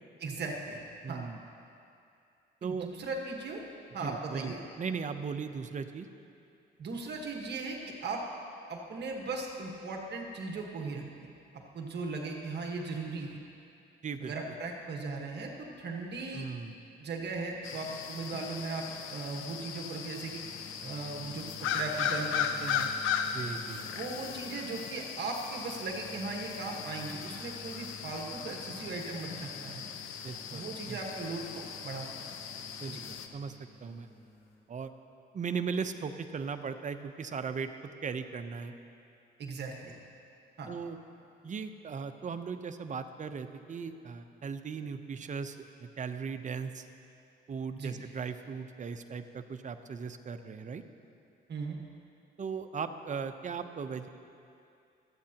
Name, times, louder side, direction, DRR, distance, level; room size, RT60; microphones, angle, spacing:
voice 1, 0.2-0.8 1.1-1.2 2.6-3.6 3.9-4.6 6.8-8.2 8.7-11.3 11.7-13.4 14.2-16.5 17.0-20.4 20.8-21.5 21.7-22.9 23.9-29.8 30.5-32.3 32.9-33.0 39.4-39.9 40.6-40.7 47.7-48.0 51.5-51.8, right 3 dB, 60° right, 0 dB, 1.5 m, -38 dB
voice 2, 1.0-1.4 2.6-2.9 4.0-6.1 14.0-14.3 16.3-16.7 23.3-23.8 30.2-31.0 32.8-34.1 34.7-34.9 35.3-37.7 38.0-38.7 40.7-41.0 41.4-46.9 47.5-50.8 52.4-54.1, right 5 dB, 40° right, 8 dB, 0.7 m, -38 dB
sound 1, 17.6-33.3, left 7 dB, 85° left, 0.7 m, -37 dB
sound 2, 20.3-34.6, left 2 dB, 55° left, 2.6 m, -53 dB
25.5 x 8.7 x 2.9 m, 2.6 s
cardioid pair, 90°, 20 cm